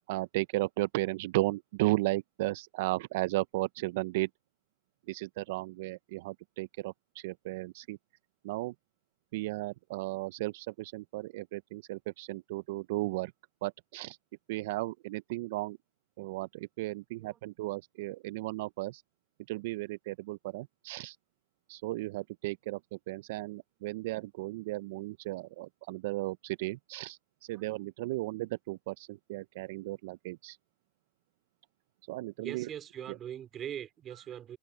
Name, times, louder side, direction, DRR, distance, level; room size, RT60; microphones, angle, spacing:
voice 1, 0.1-4.3 5.1-8.0 8.4-8.7 9.3-13.3 13.6-14.2 14.5-15.8 16.2-19.0 19.5-21.2 21.7-30.6 32.1-32.7, right 19 dB, 70° right, 0.4 m, -35 dB
voice 2, 32.4-34.6, right 10 dB, 35° right, 2.7 m, -42 dB
supercardioid pair, 120°, 0 cm